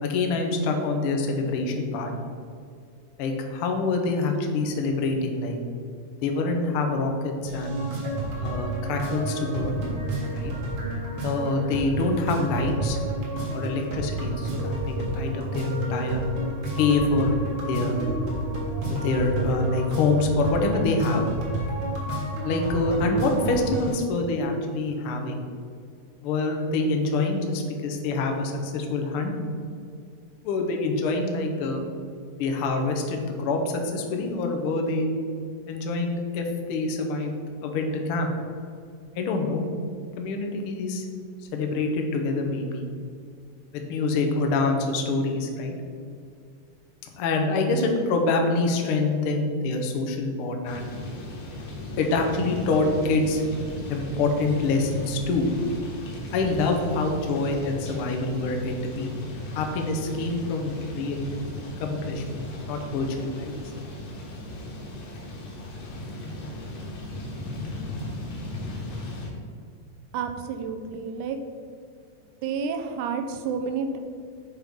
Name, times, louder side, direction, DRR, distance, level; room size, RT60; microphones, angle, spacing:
voice 1, 0.0-2.1 3.2-5.6 6.2-7.8 8.4-9.8 10.3-10.5 11.2-13.0 13.5-16.2 16.7-18.0 18.9-21.2 22.4-25.4 26.2-29.3 30.4-31.8 32.4-35.1 35.7-37.3 37.6-38.3 39.2-39.6 40.2-41.0 41.5-42.8 43.7-45.7 47.2-50.9 52.0-53.4 53.9-55.5 56.3-59.2 59.5-61.3 61.8-63.5, left 3 dB, 85° left, 3 dB, 1.2 m, -26 dB
sound 1, 7.4-23.9, right 1 dB, 50° right, 1.8 m, -30 dB
sound 2, 50.7-69.3, left 1 dB, 65° left, 2.5 m, -37 dB
voice 2, 70.1-71.4 72.4-74.0, right 5 dB, 80° right, 6 dB, 2.0 m, -30 dB
6.2 x 4.9 x 5.1 m, 2.3 s
omnidirectional pair, 3.7 m